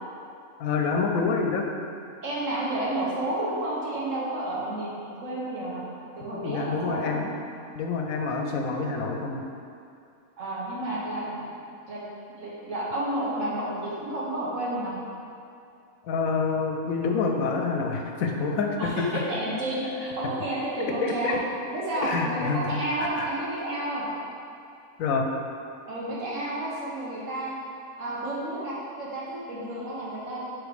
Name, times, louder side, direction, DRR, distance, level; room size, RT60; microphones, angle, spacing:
voice 1, 0.6-1.7 6.4-7.3 7.7-9.4 16.0-18.7 21.0-21.4 22.0-22.6 23.2-23.3 25.0-25.2, left 4 dB, 80° left, 2 dB, 1.0 m, -27 dB
voice 2, 2.2-5.8 6.2-7.3 10.4-11.6 11.9-12.0 12.3-14.9 18.8-21.4 21.7-24.1 25.9-27.5 28.0-30.5, right 1 dB, 65° right, -7 dB, 1.6 m, -31 dB
5.0 x 3.7 x 5.0 m, 2.6 s
omnidirectional pair, 1.5 m